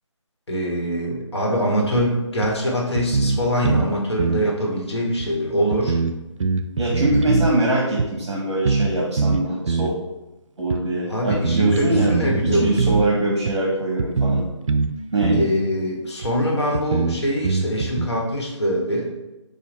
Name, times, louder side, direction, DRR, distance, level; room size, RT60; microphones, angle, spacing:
voice 1, 0.5-6.0 11.1-13.0 15.3-19.2, equal, 60° left, -2 dB, 1.3 m, -23 dB
sound 1, 1.9-2.0 2.4-2.5 3.0-3.9 4.2-4.5 5.2-5.3 5.7-7.5 8.0-8.1 8.6-8.9 9.2-10.0 10.7-10.8 11.3-13.1 13.4-13.5 14.0-14.9 15.2-15.5 16.2-16.3 16.7-18.1, right 4 dB, 85° right, 0.4 m, -22 dB
voice 2, 6.8-9.9 10.6-12.2 12.4-14.4 15.1-15.4, right 2 dB, 60° right, -2 dB, 1.0 m, -22 dB
5.0 x 2.4 x 4.1 m, 0.99 s
figure-of-eight pair, 170°, 16 cm